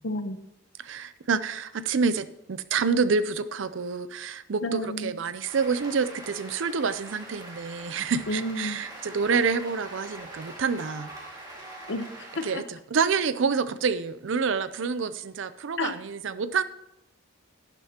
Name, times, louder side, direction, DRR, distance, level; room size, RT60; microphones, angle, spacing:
voice 1, 0.0-0.4 4.6-5.1 8.3-8.8 11.9-12.6 15.8-16.0, left 1 dB, 60° left, 9 dB, 0.8 m, -31 dB
voice 2, 0.8-11.1 12.4-16.6, right 5 dB, 65° right, 14 dB, 0.5 m, -28 dB
Cheering / Applause, 5.4-12.5, right 1 dB, 20° right, 2.1 m, -43 dB
11.5 x 10.5 x 2.9 m, 0.86 s
head